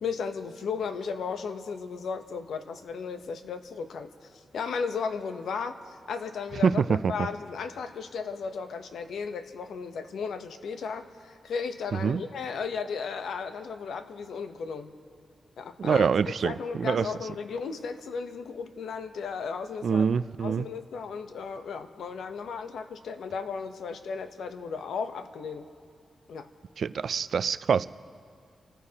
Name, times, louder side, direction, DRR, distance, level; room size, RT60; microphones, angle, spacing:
voice 1, 0.0-6.8 7.1-14.9 15.6-16.1 16.4-20.0 20.4-25.7 26.3-26.5, left 5 dB, 80° left, 8 dB, 0.8 m, -35 dB
voice 2, 6.5-7.3 11.9-12.2 15.8-17.3 19.8-20.7 26.8-27.9, right 6 dB, 55° right, 15 dB, 0.3 m, -26 dB
28.5 x 14.5 x 2.9 m, 2.2 s
wide cardioid pair, 150°, 0 cm